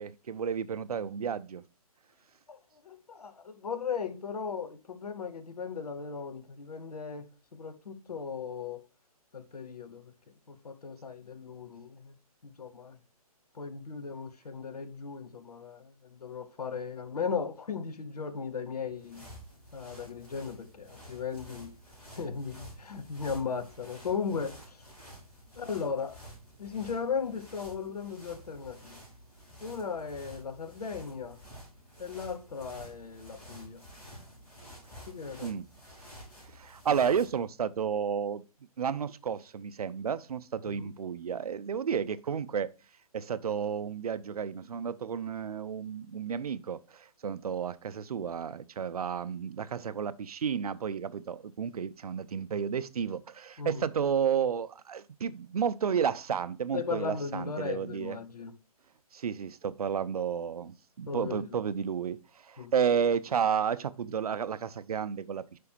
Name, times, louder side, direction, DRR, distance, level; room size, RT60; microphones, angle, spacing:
voice 1, 0.0-1.6 35.4-35.6 36.5-38.4 38.8-42.7 43.1-58.2 59.1-65.6, right 7 dB, 75° right, 0.5 m, -32 dB
voice 2, 2.5-7.3 7.5-8.8 9.3-10.0 10.5-12.1 12.4-13.0 13.5-19.3 19.7-21.7 22.1-24.8 25.5-26.2 26.6-29.0 29.6-31.4 32.0-33.8 35.1-35.6 40.6-40.9 53.6-53.8 56.7-58.5 61.1-61.6 62.6-62.7, left 6 dB, 80° left, 0.9 m, -37 dB
sound 1, 18.8-37.5, equal, 10° left, 3.3 m, -51 dB
5.1 x 4.7 x 4.3 m
hypercardioid pair, 145°, 20 cm